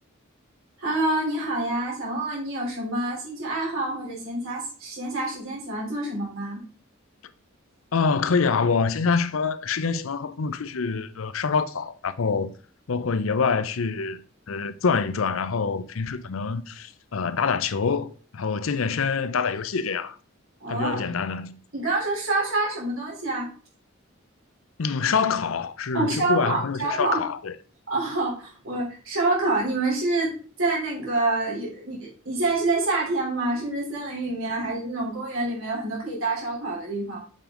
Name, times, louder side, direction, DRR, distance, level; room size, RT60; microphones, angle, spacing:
voice 1, 0.8-6.6 20.6-21.0 21.7-23.5 25.9-27.2 27.9-30.3 30.6-37.2, right 2 dB, 85° right, 3.7 m, -27 dB
voice 2, 7.9-12.5 12.9-20.2 20.7-21.6 24.8-27.5, left 5 dB, 80° left, 0.6 m, -26 dB
7.5 x 5.2 x 3.8 m
head